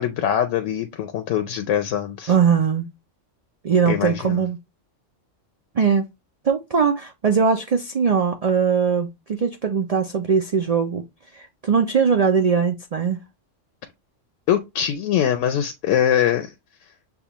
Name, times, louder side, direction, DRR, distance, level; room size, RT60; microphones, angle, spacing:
voice 1, 0.0-2.3 3.9-4.4 14.5-16.5, left 10 dB, 80° left, 0.9 m, -23 dB
voice 2, 2.3-2.9 3.6-4.6 5.7-6.1 6.4-11.0 11.3-13.2, right 6 dB, 75° right, 0.3 m, -20 dB
6.8 x 2.3 x 2.9 m
omnidirectional pair, 1.3 m